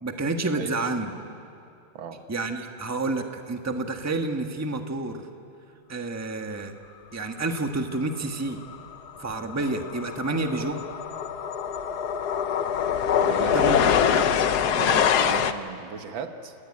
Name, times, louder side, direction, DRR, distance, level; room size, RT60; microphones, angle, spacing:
voice 1, 0.0-1.1 2.3-5.2 5.9-6.7 7.1-8.6 9.2-10.8 13.5-13.8 14.1-14.3, right 2 dB, 10° right, 5 dB, 1.2 m, -29 dB
sound 1, 8.7-8.9 9.2-15.5, left 8 dB, 60° left, 1.3 m, -24 dB
voice 2, 13.2-13.6 14.8-16.5, right 6 dB, 90° right, 7 dB, 2.2 m, -36 dB
29.0 x 18.5 x 9.8 m, 2.7 s
omnidirectional pair, 2.1 m